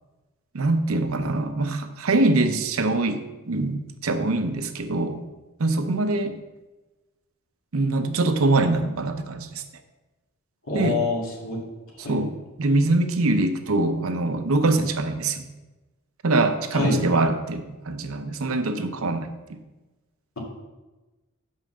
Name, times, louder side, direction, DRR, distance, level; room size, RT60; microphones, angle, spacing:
voice 1, 0.5-5.2 5.6-6.4 7.7-9.6 10.7-11.0 12.0-15.5 16.2-19.6, right 2 dB, 80° right, 7 dB, 0.8 m, -24 dB
voice 2, 10.7-11.6 12.0-12.2 16.7-17.0, left 3 dB, 75° left, -2 dB, 2.2 m, -25 dB
5.9 x 5.6 x 6.4 m, 1.1 s
head